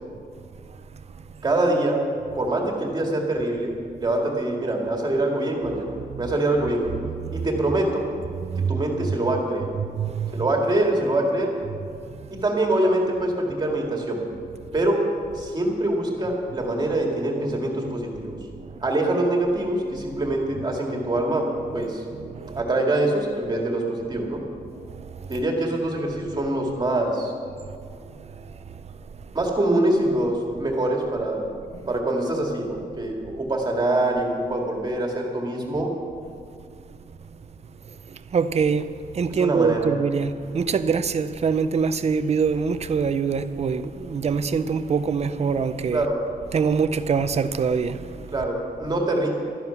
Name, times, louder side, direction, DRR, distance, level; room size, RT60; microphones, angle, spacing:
voice 1, 1.4-2.0 2.3-3.7 4.0-6.9 7.3-8.1 8.7-9.7 10.3-11.5 12.4-14.2 14.7-15.0 15.3-18.4 18.8-21.5 21.7-22.0 22.6-24.4 25.3-27.3 29.3-31.5 31.9-35.9 39.3-39.9 45.9-46.2 48.3-49.3, right 1 dB, 25° right, 2.1 m, -24 dB
voice 2, 5.7-6.3 7.0-7.5 8.4-9.1 9.8-10.5 11.7-11.8 18.6-18.9 21.7-22.7 24.7-25.4 28.1-28.8 37.9-46.1 46.5-48.4, right 5 dB, 45° right, 0.5 m, -25 dB
13.0 x 11.0 x 5.9 m
wide cardioid pair, 165°, 16 cm